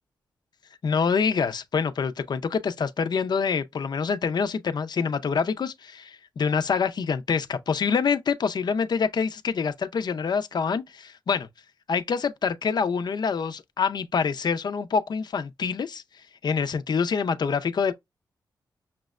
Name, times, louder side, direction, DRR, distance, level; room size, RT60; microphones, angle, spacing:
voice 1, 0.8-11.5 11.9-16.0 16.4-17.9, left 5 dB, 65° left, 0.6 m, -26 dB
5.9 x 2.1 x 2.4 m
cardioid pair, 60°, 8 cm